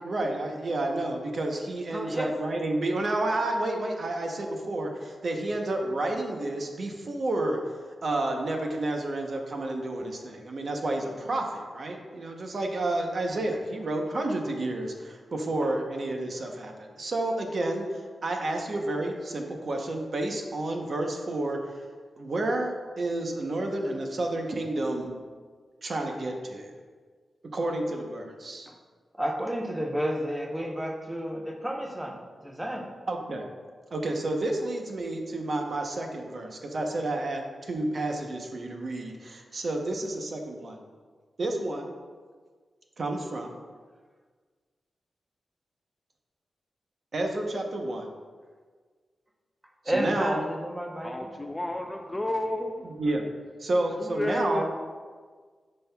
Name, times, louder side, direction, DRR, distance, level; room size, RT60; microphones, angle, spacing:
voice 1, 0.0-7.6 8.0-21.8 22.2-25.1 25.8-26.8 27.5-28.7 33.1-33.4 33.9-40.8 41.4-41.9 43.0-43.6 47.1-48.1 49.8-50.4 52.8-53.2 53.6-54.6, right 2 dB, 45° right, 2 dB, 0.8 m, -30 dB
voice 2, 1.9-2.3 15.6-15.7 16.4-16.5 28.7-28.8 29.1-32.9 49.8-51.3, equal, 10° right, 0 dB, 0.7 m, -31 dB
voice 3, 51.0-53.0 54.0-54.6, left 1 dB, 15° left, 4 dB, 0.3 m, -31 dB
9.9 x 5.4 x 2.3 m, 1.5 s
wide cardioid pair, 155°, 0 cm